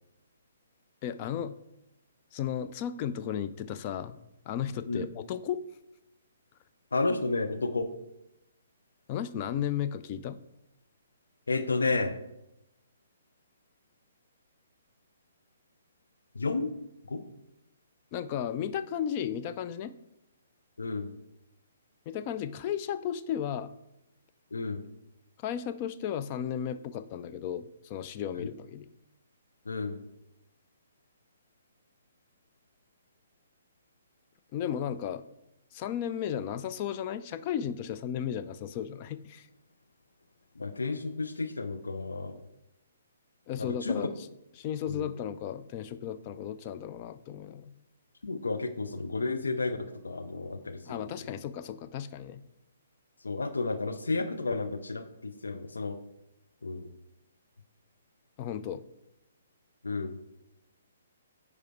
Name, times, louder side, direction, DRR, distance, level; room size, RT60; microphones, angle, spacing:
voice 1, 1.0-1.6 2.3-4.1 4.5-5.6 9.1-10.4 18.1-19.9 22.1-23.7 25.4-28.9 34.5-35.2 35.7-39.5 43.5-44.1 44.6-47.7 50.9-52.4 58.4-58.8, left 9 dB, 35° left, 11 dB, 0.5 m, -34 dB
voice 2, 6.9-7.9 11.5-12.2 16.3-16.7 17.1-17.2 20.8-21.1 24.5-24.8 28.4-28.5 29.7-30.0 40.6-42.4 43.6-44.1 44.9-45.1 48.2-49.8 50.0-51.1 53.2-56.0 56.6-56.9 59.8-60.2, left 3 dB, 75° left, 8 dB, 0.7 m, -31 dB
9.7 x 4.9 x 4.5 m, 0.87 s
figure-of-eight pair, 125°, 0 cm